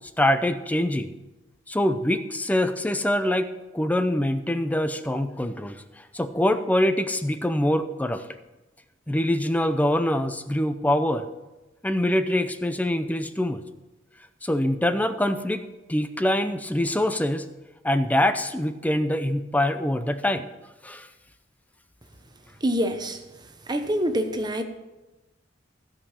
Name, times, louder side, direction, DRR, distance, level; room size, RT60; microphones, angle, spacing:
voice 1, 0.2-1.1 1.7-5.8 6.1-8.3 9.1-11.3 11.8-13.6 14.4-15.6 15.9-17.5 17.8-20.5 20.8-21.1, left 1 dB, 10° left, 10 dB, 0.5 m, -24 dB
voice 2, 22.6-23.2 23.7-24.6, equal, 20° right, 6 dB, 0.9 m, -25 dB
15.5 x 5.3 x 5.7 m, 1.1 s
head